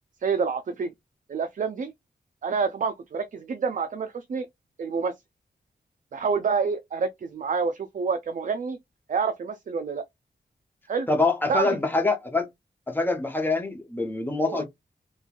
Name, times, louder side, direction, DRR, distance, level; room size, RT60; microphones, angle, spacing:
voice 1, 0.2-0.9 1.3-1.9 2.4-4.5 4.8-5.1 6.1-8.8 9.1-10.0 10.9-11.1 11.5-11.8 14.4-14.6, right 5 dB, 50° right, 0.4 m, -28 dB
voice 2, 11.1-12.5 12.9-14.6, left 3 dB, 10° left, 0.7 m, -25 dB
3.1 x 2.2 x 2.4 m
wide cardioid pair, 115°, 18 cm